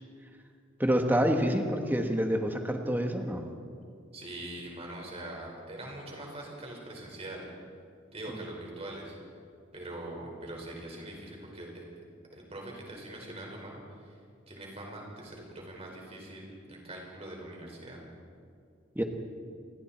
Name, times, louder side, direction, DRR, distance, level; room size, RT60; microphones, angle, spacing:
voice 1, 0.8-3.4 18.9-19.0, equal, 10° right, 4 dB, 1.4 m, -27 dB
voice 2, 4.1-7.4 8.1-9.2 9.7-11.8 12.3-14.2 14.5-18.0, right 1 dB, 30° right, -1 dB, 5.1 m, -43 dB
29.0 x 20.5 x 4.4 m, 2.3 s
head